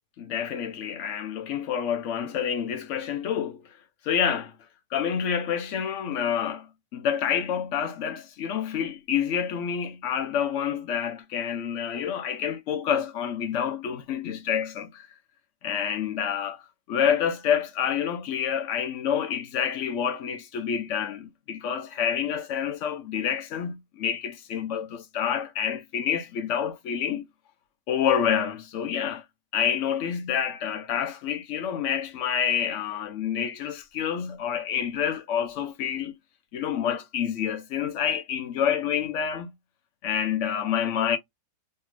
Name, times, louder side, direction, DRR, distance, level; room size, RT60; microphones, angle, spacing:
voice 1, 0.2-3.6 4.0-4.5 4.9-6.7 6.9-15.1 15.6-16.6 16.9-27.3 27.9-29.2 29.5-36.1 36.5-39.5 40.0-41.2, left 8 dB, 70° left, 0.7 m, -28 dB
3.2 x 2.7 x 3.0 m
omnidirectional pair, 1.8 m